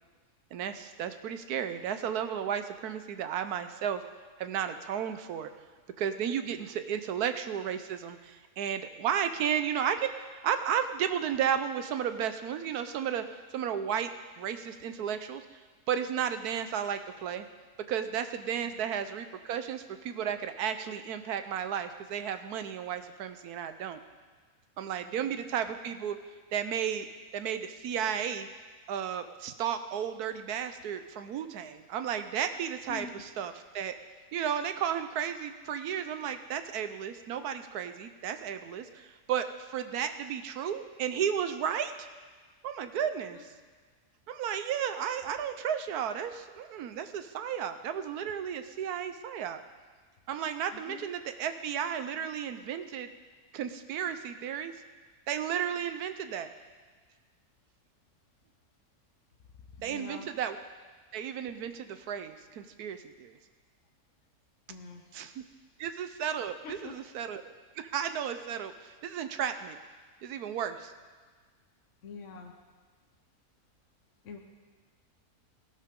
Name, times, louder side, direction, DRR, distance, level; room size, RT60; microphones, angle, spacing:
voice 1, 0.5-4.0 4.4-5.5 6.0-13.2 13.5-14.1 14.4-15.6 15.9-17.5 17.9-24.0 24.8-26.2 26.5-27.1 27.3-28.5 28.9-33.1 33.4-33.9 34.3-42.1 42.6-43.5 44.3-49.6 50.3-53.1 53.5-54.7 55.3-56.5 59.8-60.6 61.1-63.4 65.1-65.3 65.8-67.4 67.8-69.8 70.2-70.9, right 8 dB, 85° right, 9 dB, 1.2 m, -33 dB
voice 2, 25.0-25.4 32.9-33.2 43.3-43.4 50.7-51.1 59.8-60.3 64.7-65.1 66.6-66.9 72.0-72.5 74.2-74.4, left 6 dB, 55° left, 2 dB, 1.2 m, -46 dB
17.0 x 12.0 x 3.7 m, 1.4 s
omnidirectional pair, 1.6 m